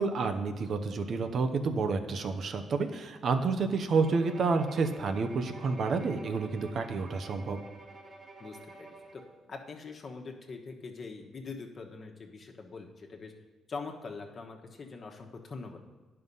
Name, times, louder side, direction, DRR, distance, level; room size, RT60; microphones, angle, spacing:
voice 1, 0.0-7.6, right 4 dB, 55° right, 8 dB, 0.8 m, -29 dB
Bowed string instrument, 4.0-9.4, right 3 dB, 35° right, 1.3 m, -49 dB
voice 2, 8.4-9.2 9.5-13.3 13.7-15.8, left 4 dB, 45° left, 2 dB, 1.3 m, -43 dB
9.6 x 5.6 x 5.5 m, 1.2 s
cardioid pair, 90°, 0 cm